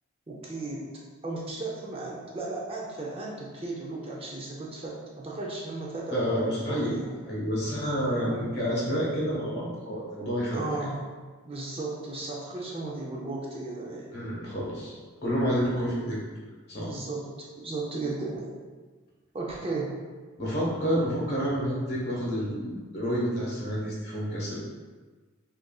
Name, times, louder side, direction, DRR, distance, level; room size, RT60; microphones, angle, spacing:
voice 1, 0.3-0.9 1.2-7.1 8.1-8.5 10.5-11.0 11.4-14.2 16.7-18.5 19.3-20.0, right 2 dB, 25° right, -4 dB, 0.5 m, -35 dB
voice 2, 6.1-6.9 7.2-10.6 14.1-15.0 15.2-16.2 16.7-16.9 20.4-24.6, equal, 50° left, -5 dB, 1.3 m, -29 dB
6.1 x 2.6 x 2.3 m, 1.4 s
head